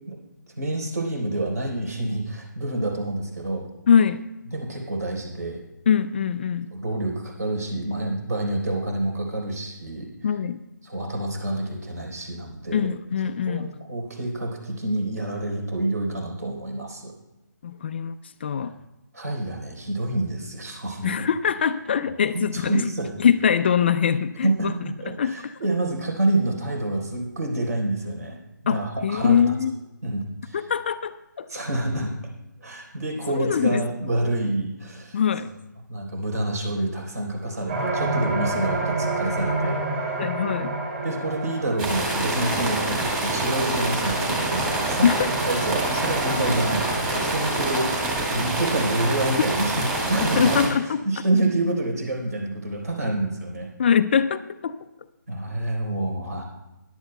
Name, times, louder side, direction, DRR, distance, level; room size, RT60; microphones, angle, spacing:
voice 1, 0.6-3.7 4.5-5.6 6.7-10.1 10.8-12.9 13.5-17.1 18.6-18.7 19.1-21.2 22.5-23.2 24.4-28.4 28.6-29.5 30.0-30.7 31.5-32.1 32.6-35.2 35.9-40.2 41.0-50.7 51.0-53.7 55.3-56.4, right 2 dB, 55° right, 2 dB, 4.0 m, -27 dB
voice 2, 3.9-4.2 5.9-6.7 10.2-10.6 12.7-13.8 17.6-18.7 21.0-22.9 23.2-24.7 25.1-25.5 28.7-29.7 30.5-31.5 33.3-33.8 35.1-35.5 40.2-40.8 45.0-45.3 50.4-51.0 53.8-54.9, left 7 dB, 35° left, 11 dB, 0.4 m, -23 dB
sound 1, 37.7-49.1, right 2 dB, 30° right, 3.8 m, -30 dB
sound 2, 41.8-50.7, right 2 dB, 15° right, 2.1 m, -26 dB
22.0 x 11.0 x 2.2 m, 0.97 s
figure-of-eight pair, 150°, 10 cm